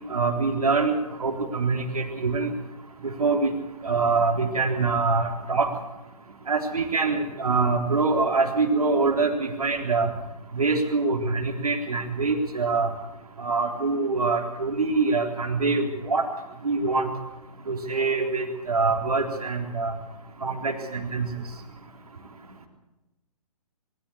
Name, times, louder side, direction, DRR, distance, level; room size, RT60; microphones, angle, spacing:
voice 1, 0.1-0.9 1.2-2.5 3.0-3.5 3.8-5.7 6.5-10.1 10.5-12.9 13.4-16.2 16.6-17.1 17.7-19.9 20.4-21.3, right 4 dB, 65° right, 2 dB, 3.8 m, -24 dB
23.0 x 15.5 x 8.6 m, 1.0 s
figure-of-eight pair, 130°, 20 cm